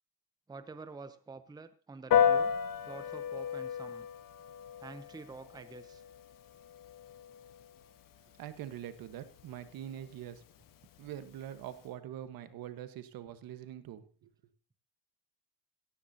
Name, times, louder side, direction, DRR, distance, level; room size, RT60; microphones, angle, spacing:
voice 1, 0.5-2.5 2.9-4.1 4.8-6.0, right 4 dB, 10° right, 11 dB, 0.8 m, -48 dB
Piano, 2.1-11.9, left 8 dB, 55° left, 1.4 m, -35 dB
voice 2, 8.4-10.4 11.0-14.3, right 11 dB, 60° right, 11 dB, 1.3 m, -44 dB
17.0 x 14.5 x 2.8 m, 0.39 s
cardioid pair, 110°, 39 cm